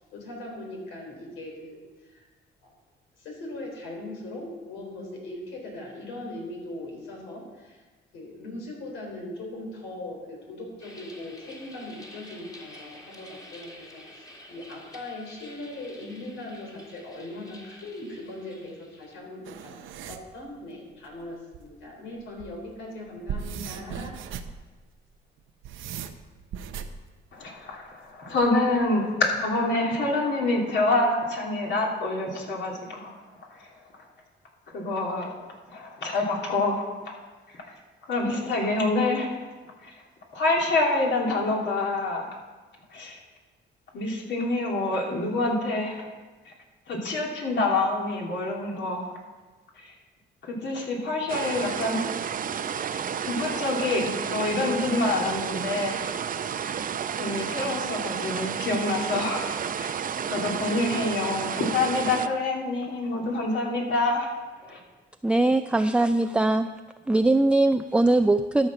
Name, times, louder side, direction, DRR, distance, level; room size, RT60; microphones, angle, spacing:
voice 1, 0.0-1.8 2.1-2.3 2.6-2.7 3.2-7.8 8.1-19.7 20.1-24.1, left 1 dB, 90° left, 0 dB, 3.6 m, -40 dB
sound 1, 10.8-19.2, left 1 dB, 20° left, 2.0 m, -49 dB
sound 2, 19.4-20.3 21.5-21.6 22.2-22.6 23.1-24.6 25.4-27.0 28.4-28.8, right 7 dB, 85° right, 0.8 m, -37 dB
voice 2, 27.3-34.1 34.7-35.4 35.7-37.2 37.5-42.4 42.9-43.2 43.9-46.0 46.4-46.5 46.8-49.2 49.7-50.0 50.4-52.2 52.7-52.9 53.2-56.1 56.6-56.8 57.2-64.8, left 2 dB, 65° left, -1 dB, 2.9 m, -27 dB
sound 3, 51.3-62.3, right 7 dB, 45° right, 0.6 m, -31 dB
voice 3, 65.2-66.7 67.1-68.7, right 2 dB, 5° right, 8 dB, 0.4 m, -21 dB
12.5 x 6.5 x 6.0 m, 1.3 s
cardioid pair, 90°, 20 cm